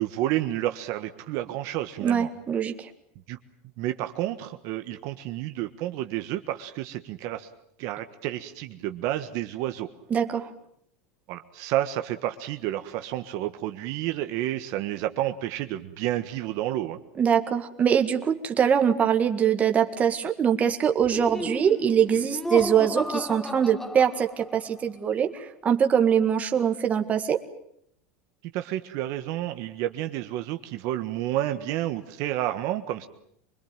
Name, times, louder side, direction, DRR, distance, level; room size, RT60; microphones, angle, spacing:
voice 1, 0.0-2.3 3.3-3.4 3.8-7.5 7.8-9.9 11.3-17.0 28.4-33.1, right 14 dB, 50° right, 8 dB, 1.5 m, -30 dB
voice 2, 2.0-2.9 10.1-10.5 17.2-27.4, right 8 dB, 20° right, 5 dB, 1.8 m, -23 dB
Laughter, 21.0-24.7, left 1 dB, 5° left, 1.0 m, -33 dB
25.0 x 21.5 x 9.1 m, 0.69 s
supercardioid pair, 155°, 7 cm